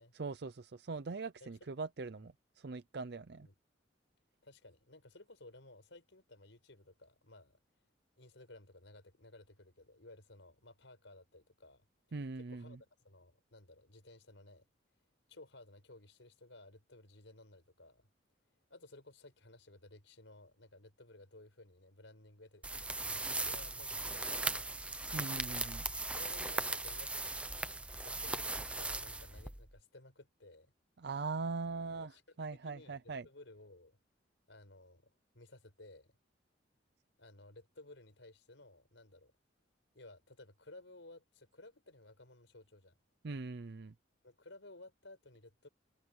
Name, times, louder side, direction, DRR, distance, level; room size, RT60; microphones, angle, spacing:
voice 1, 0.1-3.5 12.1-12.8 25.1-25.9 31.0-32.1 32.4-33.3 43.2-43.9, right 4 dB, 60° right, 0.6 m, -41 dB
voice 2, 1.4-1.7 3.4-3.5 4.4-7.6 8.2-11.9 12.4-14.7 15.3-18.1 18.7-24.8 26.1-27.5 28.0-30.7 31.9-32.2 32.5-33.0 33.2-34.0 34.5-35.1 35.3-36.1 37.2-39.3 39.9-42.9 44.2-45.7, left 2 dB, 90° left, 5.1 m, -57 dB
sound 1, 22.6-29.8, right 2 dB, 5° right, 0.8 m, -38 dB
head